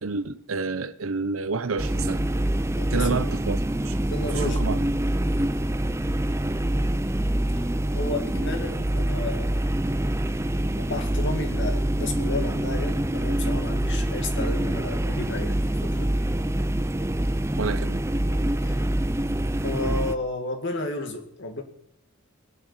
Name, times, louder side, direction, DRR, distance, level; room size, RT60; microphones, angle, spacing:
voice 1, 0.0-2.2 2.9-4.0 4.3-4.8 17.6-18.0, right 4 dB, 70° right, 0.8 m, -29 dB
sound 1, 1.8-20.2, right 1 dB, 15° right, 0.5 m, -25 dB
voice 2, 2.7-3.3 4.1-4.6 7.9-9.6 10.8-16.2 18.7-18.9 19.6-21.6, left 2 dB, 60° left, 2.3 m, -32 dB
20.0 x 6.9 x 8.5 m
head